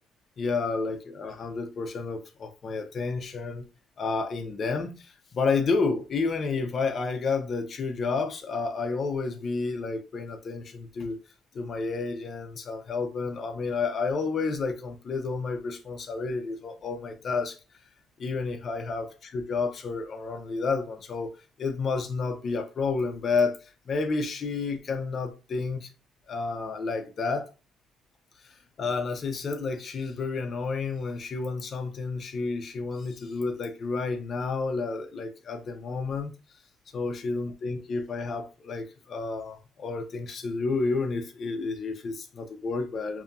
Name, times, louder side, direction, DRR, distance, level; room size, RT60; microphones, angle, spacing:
voice 1, 0.4-3.7 4.0-11.2 11.5-17.6 18.2-21.3 21.6-25.9 26.3-27.5 28.4-36.3 36.9-43.2, left 4 dB, 45° left, 0.5 m, -30 dB
2.7 x 2.6 x 2.3 m
cardioid pair, 120°, 0 cm